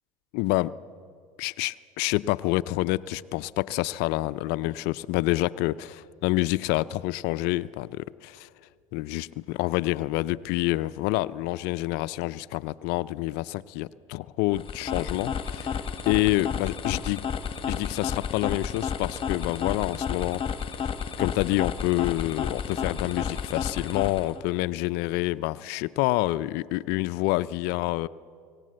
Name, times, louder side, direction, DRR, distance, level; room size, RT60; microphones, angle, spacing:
voice 1, 0.3-0.7 1.4-8.5 8.9-17.2 17.7-20.4 20.8-20.9 21.2-28.1, left 18 dB, 65° left, 16 dB, 0.5 m, -27 dB
sound 1, 14.5-24.4, left 7 dB, 30° left, 1.3 m, -32 dB
24.5 x 17.5 x 7.7 m, 2.3 s
supercardioid pair, 90°, 19 cm